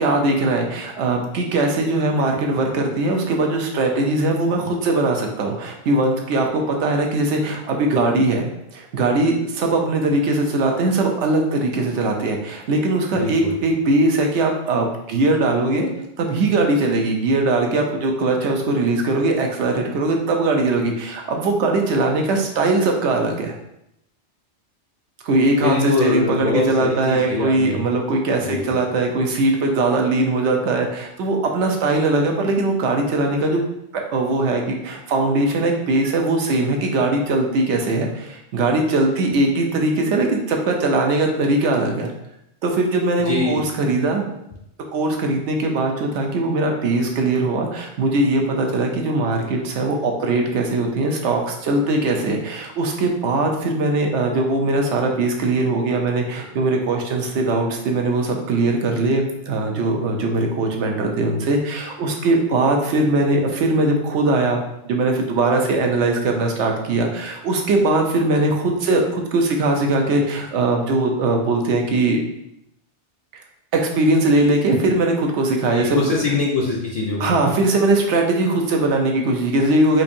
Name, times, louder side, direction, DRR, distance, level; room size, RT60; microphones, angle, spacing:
voice 1, 0.0-8.5 8.7-15.9 16.2-23.5 25.2-33.6 33.9-42.1 42.6-44.2 44.9-72.2 73.7-76.1 77.2-80.0, right 2 dB, 85° right, 2 dB, 0.9 m, -20 dB
voice 2, 13.2-13.5 25.6-27.8 28.4-28.7 43.2-43.6 75.7-77.3, left 3 dB, 50° left, -4 dB, 0.4 m, -23 dB
4.4 x 2.6 x 2.6 m, 0.79 s
omnidirectional pair, 1.2 m